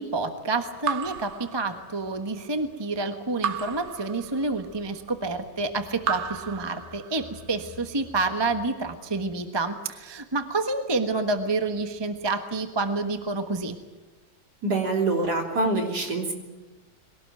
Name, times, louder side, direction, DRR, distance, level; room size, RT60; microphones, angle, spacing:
voice 1, 0.0-13.8, right 3 dB, 15° right, 7 dB, 0.9 m, -28 dB
Raindrop / Drip, 0.8-2.2 3.4-4.8 6.0-7.4, right 7 dB, 85° right, 0.6 m, -33 dB
voice 2, 14.6-16.3, right 2 dB, 45° right, 2 dB, 3.8 m, -25 dB
22.5 x 18.0 x 9.2 m, 1.2 s
omnidirectional pair, 2.4 m